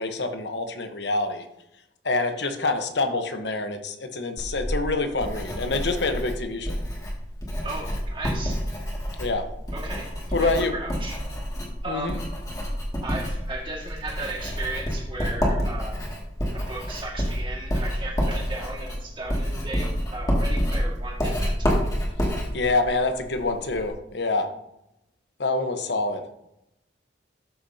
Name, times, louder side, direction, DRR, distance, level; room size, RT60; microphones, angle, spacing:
voice 1, 0.0-1.5 2.0-6.8 9.2-9.5 10.3-10.7 11.9-12.2 22.5-24.5 25.4-26.2, left 3 dB, 65° left, 7 dB, 1.0 m, -26 dB
Writing, 4.4-23.9, equal, 20° left, 2.1 m, -28 dB
voice 2, 7.6-8.6 9.7-11.2 11.8-12.2 13.0-16.0 16.5-21.9, right 2 dB, 25° right, -2 dB, 1.9 m, -36 dB
13.0 x 6.7 x 2.8 m, 0.83 s
head